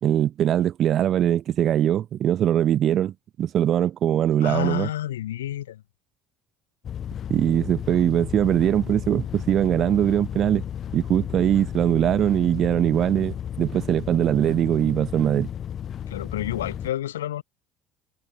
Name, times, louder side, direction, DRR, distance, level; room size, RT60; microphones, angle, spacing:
voice 1, 0.0-4.9 7.3-10.6 10.9-15.5, right 10 dB, 45° right, 2.2 m, -22 dB
voice 2, 4.4-5.8 16.1-17.4, left 12 dB, 75° left, 5.8 m, -30 dB
sound 1, 6.8-16.9, left 9 dB, 40° left, 7.8 m, -33 dB
figure-of-eight pair, 60°, 0 cm